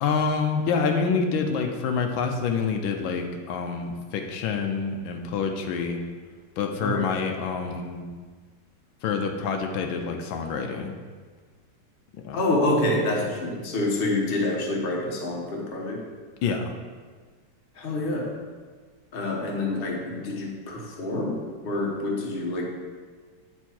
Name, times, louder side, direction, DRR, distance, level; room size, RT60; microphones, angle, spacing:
voice 1, 0.0-6.0 6.6-8.1 9.0-10.9 12.2-12.4 16.4-16.8, left 5 dB, 85° left, 4 dB, 1.5 m, -27 dB
voice 2, 6.8-7.2 12.3-16.0 17.7-18.4 19.1-22.7, left 2 dB, 35° left, -1 dB, 1.1 m, -27 dB
9.2 x 4.5 x 4.4 m, 1.5 s
omnidirectional pair, 2.1 m